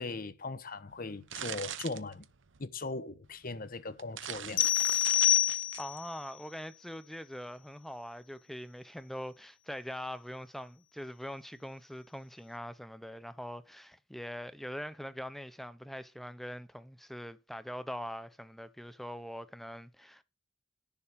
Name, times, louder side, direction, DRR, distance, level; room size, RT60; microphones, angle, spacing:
voice 1, 0.0-2.3 2.6-4.7, left 3 dB, 45° left, 1.1 m, -39 dB
sound 1, 0.9-2.6 3.4-3.5 3.9-6.0, right 10 dB, 75° right, 0.9 m, -41 dB
sound 2, 4.6-6.1, left 12 dB, 80° left, 0.8 m, -26 dB
voice 2, 5.8-20.2, equal, ahead, 0.8 m, -43 dB
11.0 x 7.2 x 5.3 m
head